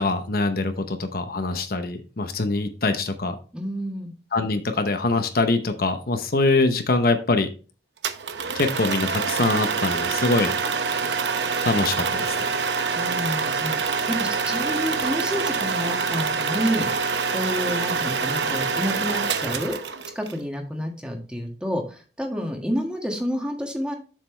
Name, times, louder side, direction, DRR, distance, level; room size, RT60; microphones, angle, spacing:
voice 1, 0.0-3.4 4.3-7.5 8.5-10.5 11.0-11.1 11.6-12.6, left 3 dB, 55° left, 7 dB, 0.8 m, -23 dB
voice 2, 3.5-4.1 12.9-16.9 17.3-19.7 20.1-23.9, equal, 5° right, 1 dB, 1.5 m, -29 dB
sound 1, 8.0-20.3, right 5 dB, 80° right, 0.8 m, -26 dB
7.5 x 6.6 x 3.2 m, 0.35 s
head